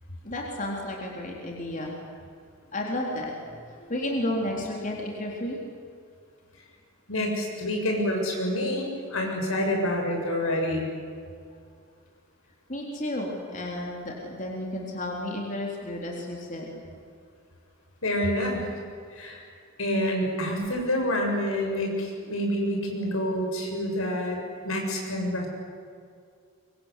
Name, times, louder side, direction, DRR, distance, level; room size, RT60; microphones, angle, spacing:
voice 1, 0.2-1.9 2.7-5.6 12.7-16.8, left 1 dB, 40° left, -1 dB, 3.8 m, -32 dB
voice 2, 7.1-10.9 18.0-18.7 19.1-19.4 19.8-24.4 24.6-25.5, left 1 dB, 85° left, 1 dB, 7.0 m, -27 dB
24.5 x 24.0 x 8.5 m, 2.3 s
head